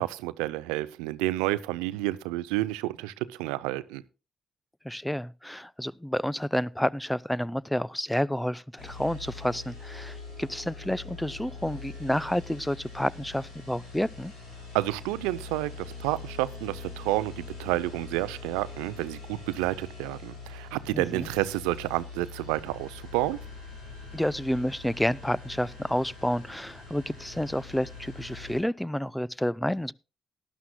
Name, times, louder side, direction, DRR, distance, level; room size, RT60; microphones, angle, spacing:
voice 1, 0.0-4.0 14.7-23.4, right 17 dB, 80° right, 0.5 m, -30 dB
voice 2, 4.8-14.3 20.9-21.3 24.1-29.9, equal, 5° left, 0.5 m, -30 dB
sound 1, 8.8-28.6, left 4 dB, 85° left, 6.0 m, -43 dB
18.0 x 11.0 x 2.2 m
hypercardioid pair, 45°, 0 cm